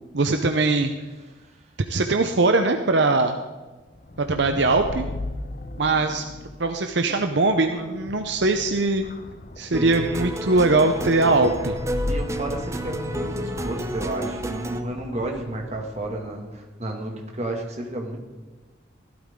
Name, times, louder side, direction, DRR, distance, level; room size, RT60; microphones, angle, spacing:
voice 1, 0.1-0.9 1.9-3.4 4.3-5.0 5.8-6.2 6.6-9.0 9.6-11.7, right 3 dB, 70° right, 6 dB, 0.8 m, -21 dB
voice 2, 1.3-1.6 2.2-2.3 6.1-6.2 9.6-9.9 12.1-18.2, right 1 dB, 35° right, 1 dB, 2.1 m, -32 dB
sound 1, 4.0-16.5, left 2 dB, 45° left, 0.7 m, -36 dB
sound 2, 9.7-14.8, right 1 dB, 15° right, 0.6 m, -30 dB
15.0 x 12.5 x 3.7 m, 1.2 s
head